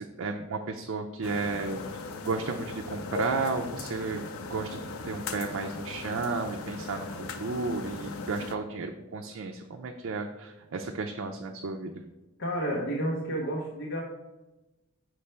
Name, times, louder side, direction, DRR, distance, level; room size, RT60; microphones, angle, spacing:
voice 1, 0.0-4.2 4.5-11.9, right 3 dB, 70° right, 3 dB, 0.5 m, -33 dB
sound 1, 1.2-8.5, left 4 dB, 90° left, 0.5 m, -39 dB
voice 2, 12.4-14.0, right 1 dB, 55° left, -2 dB, 0.9 m, -30 dB
5.8 x 3.3 x 5.6 m, 1.0 s
head